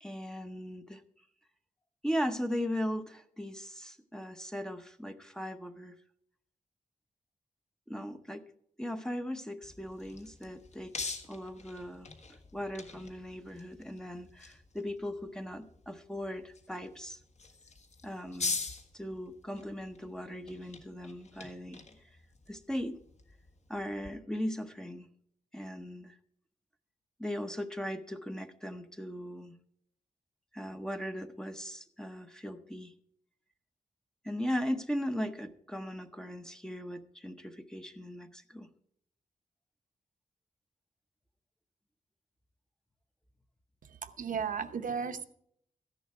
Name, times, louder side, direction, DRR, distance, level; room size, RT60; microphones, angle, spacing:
voice 1, 0.0-1.0 2.0-6.0 7.9-8.4 8.8-12.1 12.5-17.2 18.0-18.6 18.9-21.8 22.5-23.0 23.7-25.1 25.5-26.1 27.2-29.6 30.5-32.9 34.2-38.7, equal, 5° left, 8 dB, 0.7 m, -38 dB
sound 1, 9.6-24.1, left 4 dB, 55° left, 1.6 m, -44 dB
voice 2, 44.0-45.2, right 6 dB, 70° right, 8 dB, 0.9 m, -34 dB
14.0 x 11.0 x 4.7 m, 0.69 s
wide cardioid pair, 160°, 14 cm